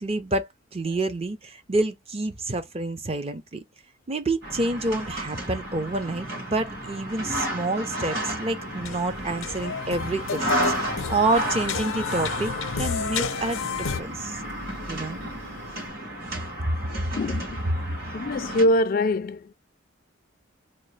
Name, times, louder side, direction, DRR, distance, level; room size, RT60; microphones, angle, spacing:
voice 1, 0.0-3.6 4.1-14.4 14.9-15.2, right 2 dB, 30° right, 0.5 m, -28 dB
sound 1, 4.4-18.6, right 1 dB, 50° right, 1.9 m, -33 dB
sound 2, 7.7-15.9, right 1 dB, 65° right, 2.4 m, -48 dB
sound 3, 8.2-8.3 8.5-14.0, left 6 dB, 85° left, 0.6 m, -31 dB
voice 2, 17.1-17.6 18.1-19.5, left 1 dB, 45° left, 0.3 m, -23 dB
3.8 x 2.3 x 3.1 m
head